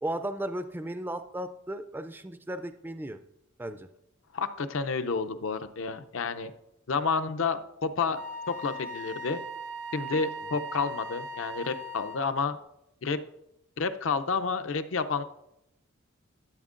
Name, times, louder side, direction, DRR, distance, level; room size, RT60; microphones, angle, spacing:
voice 1, 0.0-3.2 3.6-3.9, right 1 dB, 10° right, 10 dB, 0.3 m, -35 dB
voice 2, 4.3-6.5 6.9-9.4 9.9-12.6 13.0-13.2 13.8-15.2, left 4 dB, 65° left, 10 dB, 0.5 m, -30 dB
Wind instrument woodwind instrument, 8.1-12.4, right 1 dB, 65° right, 0.6 m, -39 dB
13.0 x 8.0 x 2.5 m, 0.83 s
head